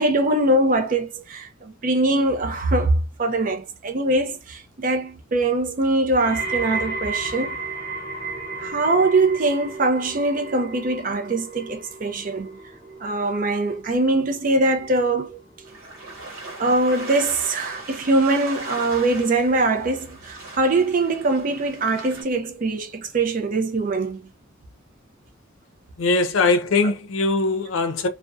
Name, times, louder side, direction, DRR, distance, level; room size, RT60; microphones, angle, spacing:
voice 1, 0.0-7.6 8.6-12.5 13.0-15.4 16.6-24.3, right 2 dB, 40° right, 0.4 m, -22 dB
sound 1, 6.2-17.3 17.6-18.1 18.8-18.9, right 3 dB, 15° left, 1.1 m, -34 dB
sound 2, 15.6-22.2, right 2 dB, 90° right, 0.9 m, -38 dB
voice 2, 26.0-28.1, left 3 dB, 75° left, 0.5 m, -21 dB
2.5 x 2.1 x 2.3 m
head